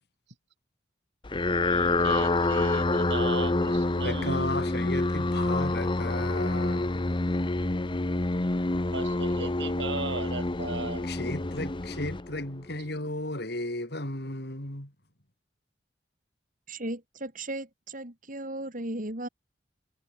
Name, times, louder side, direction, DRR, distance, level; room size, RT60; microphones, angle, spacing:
sound 1, 1.2-12.7, left 2 dB, 30° left, 0.9 m, -27 dB
voice 1, 1.6-4.5 8.9-11.1, right 3 dB, 75° right, 8.0 m, -37 dB
voice 2, 4.0-7.1 11.0-14.9, left 2 dB, 65° left, 5.4 m, -34 dB
voice 3, 16.7-19.3, right 1 dB, 50° right, 6.3 m, -36 dB
head